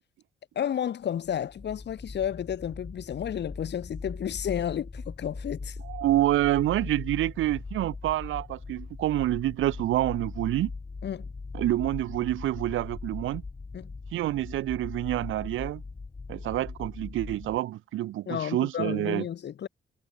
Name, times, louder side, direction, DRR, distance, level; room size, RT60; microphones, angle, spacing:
voice 1, 0.5-5.8 11.0-11.3 13.7-13.9 18.3-19.7, left 9 dB, 60° left, 2.9 m, -32 dB
sound 1, 1.2-17.6, left 4 dB, 25° left, 4.2 m, -40 dB
voice 2, 5.8-10.7 11.5-13.4 14.1-15.8 16.3-19.3, right 14 dB, 85° right, 4.2 m, -27 dB
cardioid pair, 90°, 20 cm